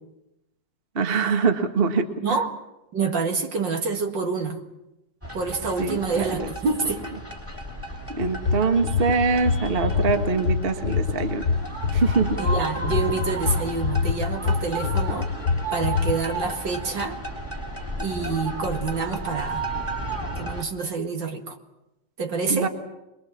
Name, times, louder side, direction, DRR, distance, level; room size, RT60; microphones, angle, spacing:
voice 1, 0.9-2.4 5.8-6.5 8.1-11.5 11.9-12.4 22.5-22.7, right 4 dB, 30° right, 6 dB, 1.5 m, -24 dB
voice 2, 2.9-4.6 5.3-7.1 12.4-15.3 15.7-17.2 18.0-19.7 20.4-21.6 22.2-22.7, right 4 dB, 60° right, 4 dB, 2.5 m, -27 dB
sound 1, 5.2-20.6, right 1 dB, 5° right, 2.3 m, -33 dB
sound 2, 8.2-16.1, left 5 dB, 50° left, 1.0 m, -24 dB
24.0 x 22.0 x 7.4 m, 0.92 s
omnidirectional pair, 2.3 m